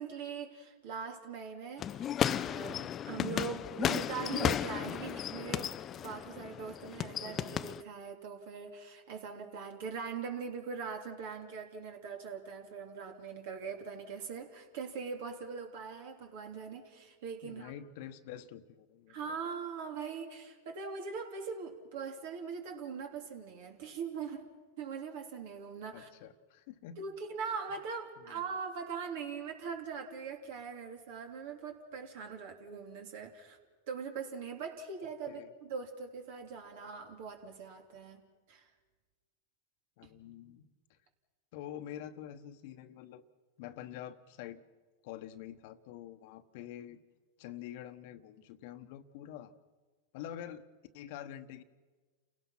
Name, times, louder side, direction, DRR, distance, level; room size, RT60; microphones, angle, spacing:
voice 1, 0.0-17.7 19.1-24.5 24.8-26.1 27.0-33.6 33.9-38.2 38.5-38.7, right 5 dB, 65° right, 4 dB, 3.1 m, -41 dB
sound 1, 1.8-7.8, left 10 dB, 30° left, 0.5 m, -34 dB
voice 2, 17.4-19.2 25.9-27.0 28.3-28.4 35.3-35.5 40.0-41.0 41.5-43.2 43.6-44.6 45.0-47.0 47.4-49.5 50.1-50.6 50.9-51.6, left 11 dB, 60° left, 10 dB, 1.2 m, -46 dB
29.5 x 17.0 x 5.9 m, 1.4 s
hypercardioid pair, 105°, 0 cm